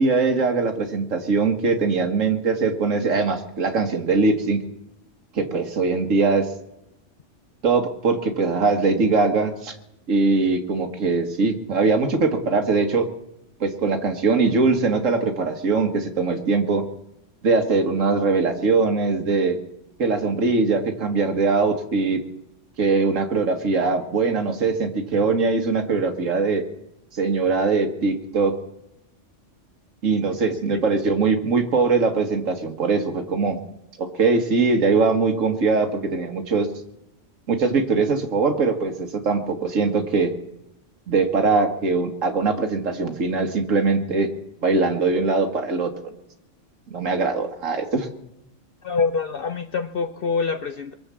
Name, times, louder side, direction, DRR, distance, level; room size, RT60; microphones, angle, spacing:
voice 1, 0.0-4.6 5.4-6.5 7.6-9.8 10.1-13.1 13.6-16.8 17.4-19.6 20.0-22.2 22.8-26.6 27.1-28.5 30.0-33.6 34.0-36.7 37.5-40.3 41.1-44.3 44.6-46.1 46.9-48.1, right 4 dB, 90° right, 5 dB, 1.8 m, -21 dB
voice 2, 48.8-50.9, left 5 dB, 55° left, 9 dB, 0.8 m, -25 dB
22.5 x 7.9 x 7.4 m, 0.86 s
omnidirectional pair, 1.3 m